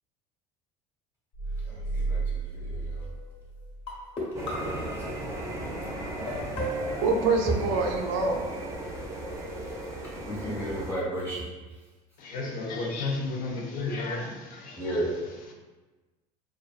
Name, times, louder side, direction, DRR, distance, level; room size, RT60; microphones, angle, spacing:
sound 1, 1.3-4.0, right 3 dB, 85° left, 1.1 m, -33 dB
voice 1, 1.6-3.1 10.2-11.4 14.7-15.1, right 1 dB, 10° left, -7 dB, 1.0 m, -33 dB
sound 2, 2.9-3.3 3.9-5.3 6.3-7.6, right 1 dB, 35° left, 1.0 m, -34 dB
sound 3, 4.3-10.9, right 1 dB, 20° right, 0.5 m, -36 dB
voice 2, 7.0-8.5, right 4 dB, 85° right, 1 dB, 0.4 m, -25 dB
voice 3, 12.2-15.5, left 3 dB, 60° left, 1 dB, 0.6 m, -33 dB
2.5 x 2.3 x 2.4 m, 1.2 s
supercardioid pair, 110°, 16 cm